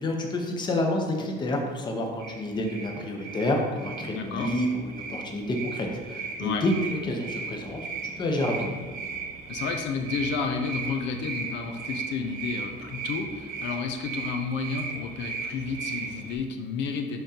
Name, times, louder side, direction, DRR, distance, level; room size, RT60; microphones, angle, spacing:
voice 1, 0.0-8.8, left 1 dB, 25° left, 1 dB, 0.8 m, -29 dB
sound 1, 2.2-16.4, right 4 dB, 50° right, 1.0 m, -37 dB
voice 2, 4.1-4.5 6.4-6.6 9.5-17.2, left 5 dB, 75° left, 4 dB, 0.6 m, -31 dB
11.0 x 3.7 x 2.9 m, 1.5 s
cardioid pair, 160°, 19 cm